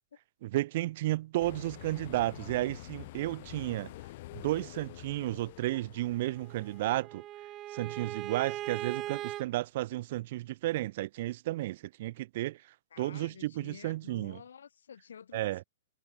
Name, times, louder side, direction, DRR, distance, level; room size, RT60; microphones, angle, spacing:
voice 1, 0.4-3.9 4.3-7.2 7.7-12.6 13.0-14.4 15.3-15.6, right 16 dB, 50° right, 0.6 m, -33 dB
sound 1, 1.4-7.0, left 18 dB, 50° left, 1.0 m, -47 dB
Bowed string instrument, 6.3-9.4, right 14 dB, 25° right, 1.2 m, -39 dB
voice 2, 12.9-15.7, left 7 dB, 85° left, 2.5 m, -50 dB
hypercardioid pair, 145°, 0 cm